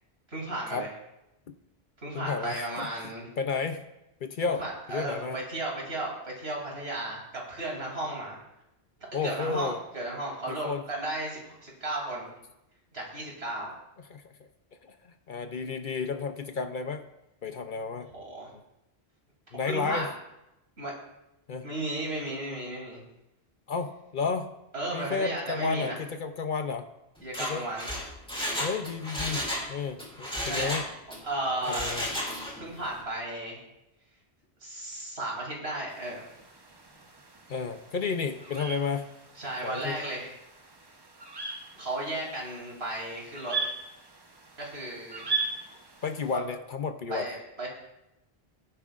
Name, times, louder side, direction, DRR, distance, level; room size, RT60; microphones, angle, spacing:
voice 1, 0.3-0.9 2.0-3.3 4.4-8.4 9.2-12.3 12.9-13.7 18.1-18.5 19.6-20.1 20.8-20.9 21.6-23.0 24.7-26.0 27.2-27.9 30.5-30.7 31.2-31.9 32.6-33.6 34.6-36.2 39.4-40.3 41.7-43.6 44.6-45.3 47.1-47.7, right 1 dB, 70° right, -3 dB, 3.3 m, -34 dB
voice 2, 2.1-2.9 3.4-3.8 4.2-4.6 4.9-5.4 9.1-9.8 10.5-10.8 14.1-14.2 14.8-14.9 15.3-17.1 17.4-18.1 19.5-20.1 21.5-21.7 23.7-24.5 24.9-26.9 27.4-27.6 28.6-29.4 29.7-30.8 31.7-32.1 37.5-39.1 39.6-40.0 46.0-47.3, left 5 dB, 55° left, 8 dB, 0.7 m, -32 dB
Mechanisms, 27.2-29.7 30.0-31.2 31.6-32.6 32.9-33.0, equal, 5° left, 2.4 m, -33 dB
sound 1, 35.9-46.4, right 4 dB, 25° right, 0.8 m, -39 dB
15.5 x 10.0 x 2.5 m, 0.90 s
omnidirectional pair, 1.1 m